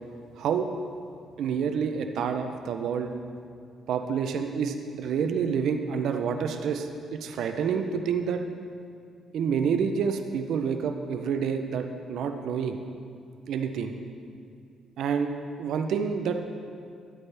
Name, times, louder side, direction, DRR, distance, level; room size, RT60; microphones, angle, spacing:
voice 1, 0.4-0.7 1.4-3.1 3.9-8.4 9.3-12.8 13.5-14.0 15.0-15.3 15.6-16.3, right 6 dB, 75° right, 6 dB, 0.5 m, -28 dB
11.5 x 8.5 x 3.4 m, 2.4 s
cardioid pair, 90°, 0 cm